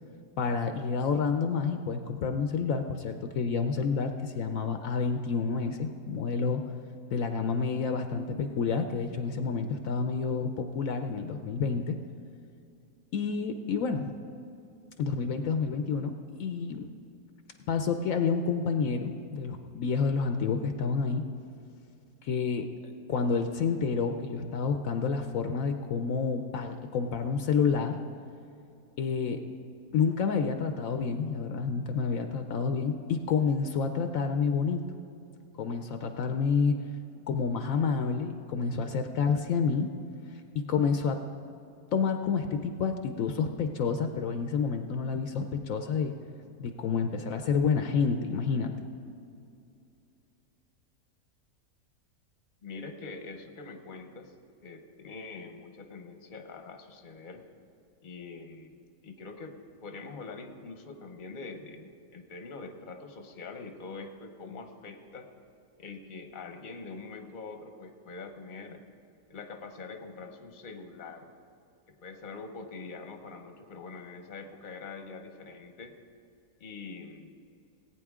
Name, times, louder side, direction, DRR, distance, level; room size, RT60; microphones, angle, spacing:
voice 1, 0.4-6.6 7.1-12.0 13.1-14.1 15.0-16.1 16.4-16.9 17.7-21.2 22.2-22.7 23.1-28.0 29.0-29.4 29.9-34.8 35.6-36.8 37.3-39.9 40.5-41.2 41.9-46.1 46.6-48.7, left 5 dB, 70° left, 6 dB, 1.0 m, -29 dB
voice 2, 52.6-54.3 54.6-57.4 58.0-58.8 59.0-65.3 65.8-68.8 69.3-71.3 71.9-75.9 76.6-77.4, left 4 dB, 40° left, 5 dB, 0.9 m, -44 dB
18.5 x 9.0 x 3.6 m, 2.6 s
omnidirectional pair, 1.6 m